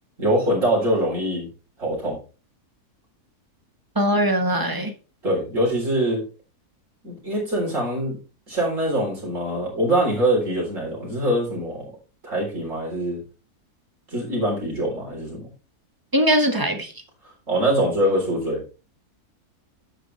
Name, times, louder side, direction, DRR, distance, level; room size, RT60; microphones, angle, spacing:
voice 1, 0.2-1.5 1.8-2.2 5.2-6.2 7.0-8.2 8.5-11.9 12.2-13.2 14.1-15.5 17.5-18.6, right 1 dB, 55° right, -3 dB, 4.3 m, -23 dB
voice 2, 3.9-4.9 16.1-16.9, equal, 15° right, 5 dB, 1.3 m, -21 dB
10.0 x 8.4 x 3.3 m, 0.34 s
omnidirectional pair, 1.6 m